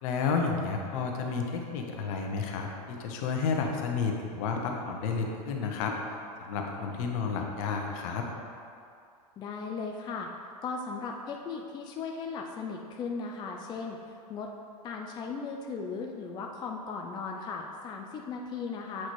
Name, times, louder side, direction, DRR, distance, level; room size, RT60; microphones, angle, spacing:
voice 1, 0.0-6.0 6.4-8.3, left 5 dB, 60° left, 2 dB, 0.9 m, -31 dB
voice 2, 9.4-10.3 10.6-14.5 14.8-19.1, left 4 dB, 20° left, 1 dB, 0.4 m, -37 dB
7.6 x 4.0 x 3.1 m, 2.4 s
hypercardioid pair, 115°, 20 cm